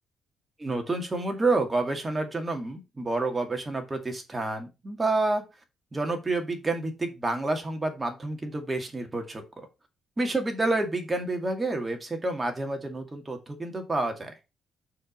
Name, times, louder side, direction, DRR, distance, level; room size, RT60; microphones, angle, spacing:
voice 1, 0.6-5.4 5.9-9.4 10.2-14.3, right 2 dB, 20° right, 4 dB, 2.2 m, -29 dB
6.4 x 5.0 x 5.2 m, 0.26 s
cardioid pair, 90°, 0 cm